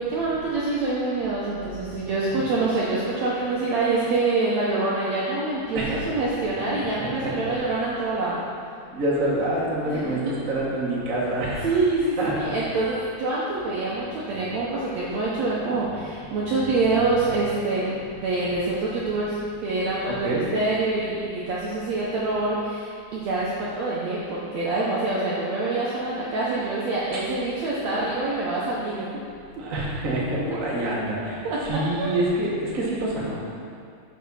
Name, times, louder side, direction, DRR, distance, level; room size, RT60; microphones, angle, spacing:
voice 1, 0.0-8.4 9.9-10.1 11.6-18.0 18.2-29.1 31.4-31.6 32.0-32.1, right 3 dB, 75° right, -6 dB, 1.6 m, -26 dB
voice 2, 7.0-7.5 8.9-11.8 12.2-12.5 20.0-20.5 27.1-27.2 28.0-28.1 29.6-33.4, right 1 dB, 55° right, -6 dB, 0.8 m, -27 dB
7.2 x 6.2 x 5.5 m, 2.4 s
omnidirectional pair, 4.2 m